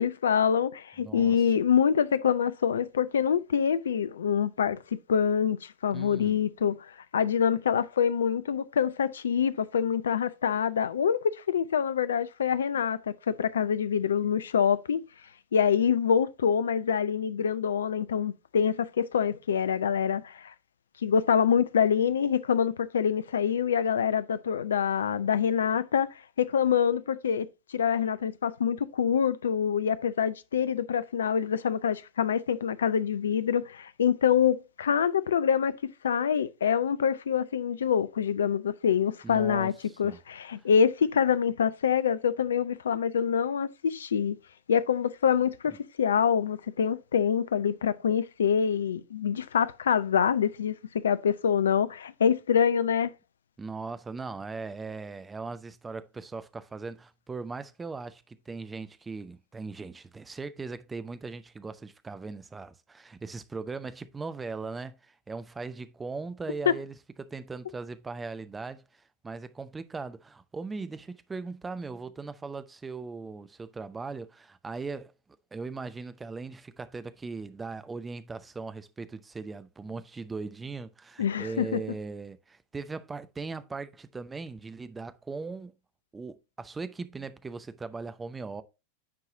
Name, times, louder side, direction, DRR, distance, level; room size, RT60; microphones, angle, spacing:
voice 1, 0.0-6.9 7.1-15.0 15.5-20.5 21.0-26.1 26.4-27.5 27.7-35.7 36.0-39.7 40.0-44.4 44.7-53.1 81.2-81.8, left 7 dB, 65° left, 0.5 m, -26 dB
voice 2, 1.0-1.4 5.9-6.4 39.2-40.2 53.6-75.1 75.5-85.7 86.1-88.6, right 4 dB, 15° right, 0.6 m, -39 dB
9.5 x 4.6 x 2.7 m
figure-of-eight pair, 90°, 0 cm